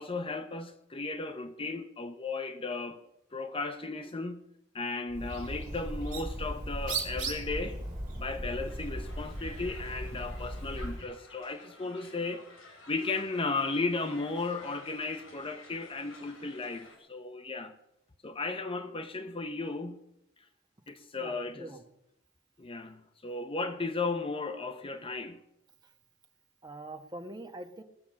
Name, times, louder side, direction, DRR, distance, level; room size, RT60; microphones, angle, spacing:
voice 1, 0.0-3.0 3.3-4.4 4.7-7.8 8.2-12.5 12.9-17.7 18.2-20.0 20.9-21.7 22.6-25.4, left 3 dB, 30° left, 0.8 m, -35 dB
Bird, 5.1-11.1, right 1 dB, 40° right, 3.5 m, -37 dB
Crowd, 8.6-17.0, left 3 dB, 75° left, 4.5 m, -52 dB
voice 2, 21.2-21.8 26.6-27.8, right 2 dB, 20° right, 1.2 m, -44 dB
19.0 x 7.1 x 7.5 m
head